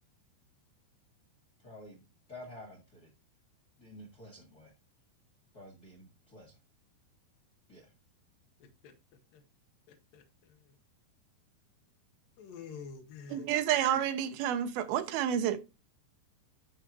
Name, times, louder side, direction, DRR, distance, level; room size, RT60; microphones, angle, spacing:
voice 1, 1.6-2.0 2.3-3.1 3.8-4.7 5.5-6.6 7.7-7.9, left 1 dB, 40° left, 1.4 m, -50 dB
voice 2, 8.6-8.9 9.3-9.4 9.9-10.8 12.4-13.5, left 6 dB, 60° left, 3.0 m, -49 dB
voice 3, 13.3-15.6, right 10 dB, 80° right, 2.3 m, -29 dB
12.5 x 4.5 x 3.1 m
omnidirectional pair, 5.1 m